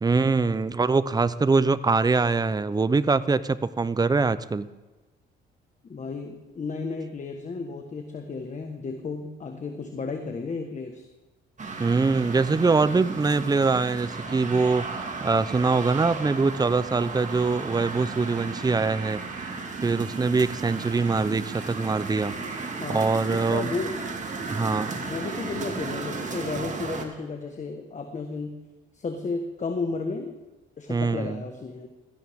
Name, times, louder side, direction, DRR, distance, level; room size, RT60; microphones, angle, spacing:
voice 1, 0.0-4.7 11.8-19.5 19.8-23.7 24.5-25.0 30.9-31.4, right 4 dB, 20° right, 15 dB, 0.7 m, -24 dB
voice 2, 5.9-11.1 22.8-24.0 24.9-28.6 28.9-30.4 30.8-31.9, left 4 dB, 35° left, 4 dB, 1.5 m, -33 dB
sound 1, 11.6-27.1, right 4 dB, 40° right, 2.2 m, -34 dB
17.0 x 14.0 x 3.7 m, 1.2 s
cardioid pair, 90°, 20 cm